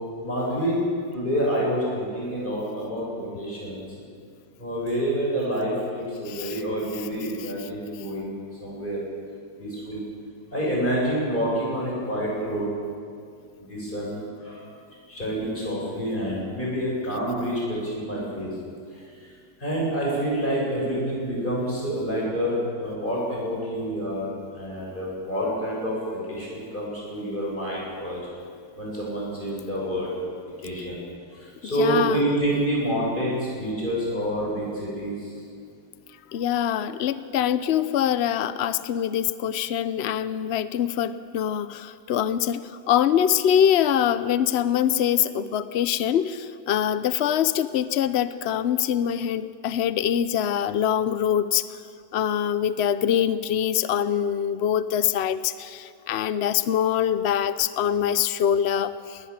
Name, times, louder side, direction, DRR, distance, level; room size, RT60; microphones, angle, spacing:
voice 1, 0.2-0.8 1.1-3.8 4.6-8.3 8.6-9.0 9.6-10.0 10.5-12.7 13.7-14.7 15.1-18.5 19.6-28.2 28.8-30.1 30.6-31.0 31.4-35.3, equal, 25° left, -5 dB, 8.0 m, -28 dB
voice 2, 6.3-6.6 7.0-7.1 7.4-7.7 17.1-17.2 31.6-32.3 36.3-42.6 42.9-51.7 52.1-59.2, left 9 dB, 85° left, 13 dB, 0.5 m, -24 dB
21.0 x 19.5 x 7.3 m, 2.3 s
omnidirectional pair, 1.9 m